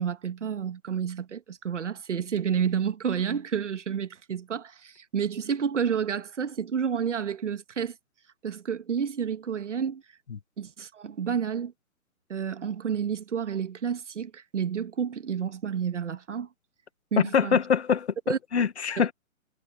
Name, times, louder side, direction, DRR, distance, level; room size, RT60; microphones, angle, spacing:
voice 1, 0.0-7.9 8.4-10.0 10.6-11.7 12.3-16.5 17.1-17.6 18.3-18.4 19.0-19.1, right 7 dB, 55° right, 1.8 m, -30 dB
voice 2, 17.2-19.1, left 7 dB, 50° left, 1.2 m, -24 dB
hypercardioid pair, 180°, 43 cm